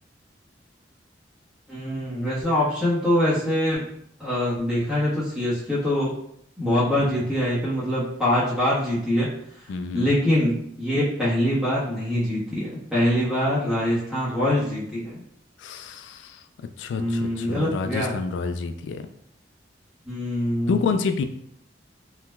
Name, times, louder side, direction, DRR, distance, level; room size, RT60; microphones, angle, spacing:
voice 1, 1.7-3.8 4.2-6.1 6.6-9.3 9.9-15.2 16.9-18.1 20.0-20.8, left 1 dB, 5° right, -10 dB, 1.2 m, -24 dB
voice 2, 9.7-10.1 13.5-13.7 15.6-16.4 16.8-19.0 20.7-21.2, left 5 dB, 75° left, 8 dB, 0.3 m, -28 dB
3.3 x 2.8 x 2.2 m, 0.70 s
head